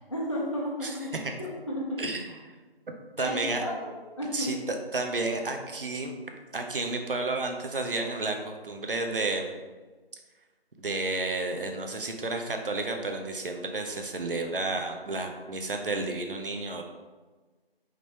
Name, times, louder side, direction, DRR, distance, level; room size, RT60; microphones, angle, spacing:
voice 1, 0.1-1.1 1.4-2.0 3.2-4.5, left 1 dB, 30° left, -5 dB, 0.5 m, -33 dB
voice 2, 0.8-1.2 2.0-2.2 3.2-3.6 4.3-6.1 6.5-9.5 10.8-16.8, right 2 dB, 60° right, 4 dB, 0.7 m, -31 dB
5.1 x 3.2 x 2.8 m, 1.3 s
figure-of-eight pair, 160°, 31 cm